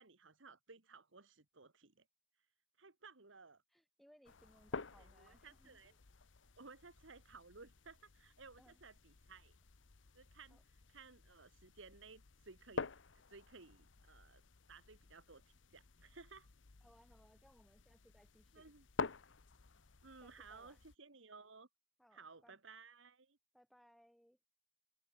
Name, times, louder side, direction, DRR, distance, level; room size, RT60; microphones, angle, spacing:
voice 1, 0.0-2.0 2.8-3.6 5.0-5.9 6.6-9.5 10.1-14.4 14.7-16.5 18.5-18.9 20.0-21.7 22.1-23.4, right 4 dB, 90° right, 1.8 m, -58 dB
voice 2, 3.7-6.0 8.6-8.8 10.5-10.6 16.8-18.7 20.2-20.8 22.0-22.6 23.5-24.4, equal, ahead, 2.2 m, -68 dB
sound 1, 4.2-20.9, left 4 dB, 85° left, 1.0 m, -50 dB
head